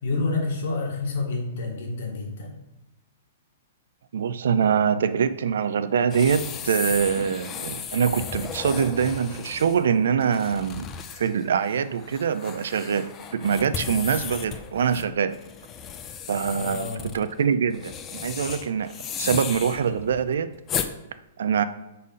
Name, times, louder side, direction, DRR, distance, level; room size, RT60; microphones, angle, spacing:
voice 1, 0.0-2.5 16.5-17.0, left 3 dB, 55° left, 1 dB, 1.6 m, -28 dB
voice 2, 4.1-10.9 11.2-15.4 16.3-20.5 21.4-21.6, right 7 dB, 70° right, 13 dB, 0.4 m, -24 dB
sound 1, 6.1-20.9, left 8 dB, 15° left, 0.3 m, -35 dB
5.0 x 4.1 x 5.5 m, 0.98 s
hypercardioid pair, 180°, 0 cm